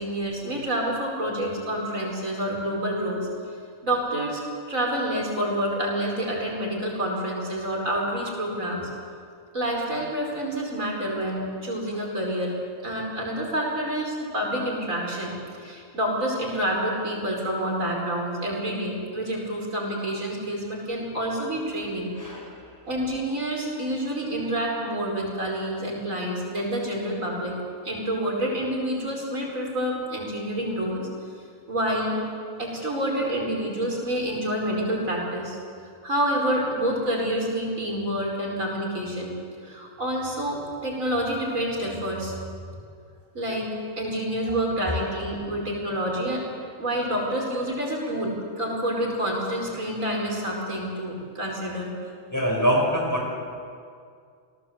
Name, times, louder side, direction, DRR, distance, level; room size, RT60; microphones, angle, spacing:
voice 1, 0.0-3.3 3.8-4.4 4.7-8.9 9.5-12.5 12.8-15.3 15.6-22.1 22.9-27.6 27.8-31.1 31.7-32.2 32.6-35.6 36.0-39.3 39.6-42.3 43.3-43.7 44.0-46.4 46.8-51.9, right 1 dB, 75° right, -1 dB, 5.4 m, -28 dB
voice 2, 22.2-22.6 44.5-44.6 52.3-53.4, equal, 15° left, -1 dB, 4.9 m, -24 dB
28.0 x 18.0 x 8.0 m, 2.3 s
omnidirectional pair, 1.4 m